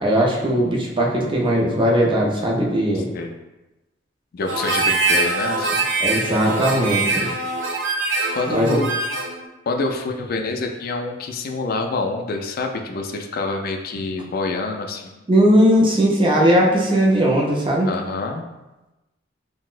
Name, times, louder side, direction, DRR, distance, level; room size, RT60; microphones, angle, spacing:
voice 1, 0.0-3.1 6.0-7.3 8.5-8.8 15.3-17.9, equal, 25° right, -2 dB, 0.5 m, -18 dB
voice 2, 2.9-3.4 4.3-5.9 8.3-9.0 9.7-15.2 17.8-18.4, left 3 dB, 50° left, 4 dB, 0.3 m, -27 dB
Harmonica, 4.5-9.4, right 3 dB, 80° right, 0.6 m, -23 dB
3.9 x 2.0 x 2.4 m, 1.0 s
head